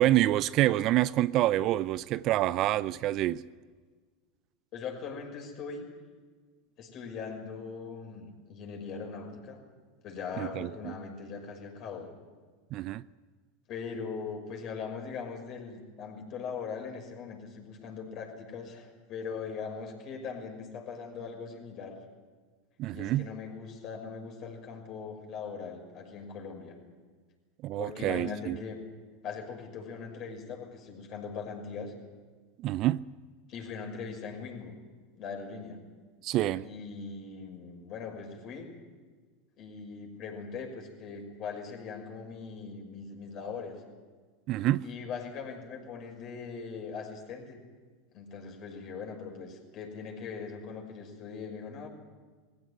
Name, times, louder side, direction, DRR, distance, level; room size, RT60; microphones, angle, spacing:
voice 1, 0.0-3.4 10.4-10.9 12.7-13.0 22.8-23.3 27.6-28.6 32.6-33.1 36.2-36.7 44.5-44.8, right 14 dB, 50° right, 0.5 m, -27 dB
voice 2, 4.7-5.9 6.8-9.6 10.0-12.1 13.7-22.0 22.9-26.8 27.8-28.8 29.2-31.9 33.5-34.7 35.2-35.8 36.6-38.7 39.6-43.8 44.8-47.6 48.1-51.9, left 5 dB, 45° left, 6.1 m, -40 dB
21.0 x 15.5 x 10.0 m
hypercardioid pair, 95°, 0 cm